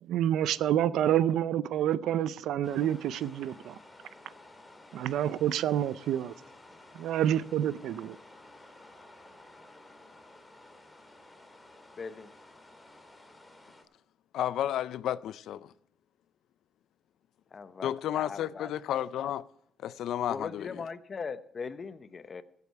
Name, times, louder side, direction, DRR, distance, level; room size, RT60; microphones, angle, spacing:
voice 1, 0.0-3.8 4.9-6.3 6.9-8.2, right 11 dB, 80° right, 0.5 m, -28 dB
sound 1, 2.6-13.8, left 2 dB, 15° left, 2.2 m, -53 dB
voice 2, 12.0-12.3 17.5-18.7 20.3-22.4, left 5 dB, 40° left, 0.8 m, -40 dB
voice 3, 14.3-15.7 17.8-19.4 19.8-20.7, left 11 dB, 75° left, 0.4 m, -32 dB
16.0 x 8.3 x 4.7 m
cardioid pair, 90°, 0 cm